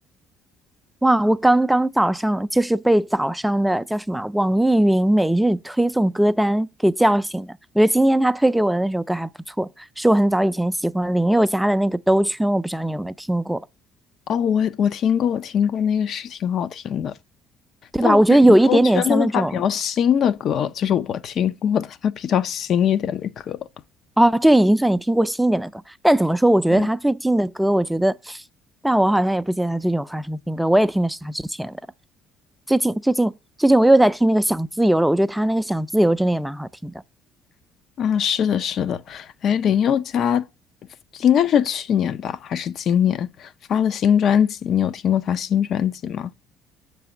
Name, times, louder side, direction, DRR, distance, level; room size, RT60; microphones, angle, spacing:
voice 1, 1.0-9.7 10.0-13.6 17.9-19.6 24.2-28.4 28.8-31.8 32.7-33.3 33.6-36.9, right 1 dB, 5° right, 0.4 m, -19 dB
voice 2, 14.3-17.2 18.0-18.2 18.7-23.6 26.7-26.9 38.0-40.4 41.1-46.3, left 8 dB, 55° left, 0.4 m, -22 dB
6.8 x 3.3 x 6.1 m
hypercardioid pair, 60°, 0 cm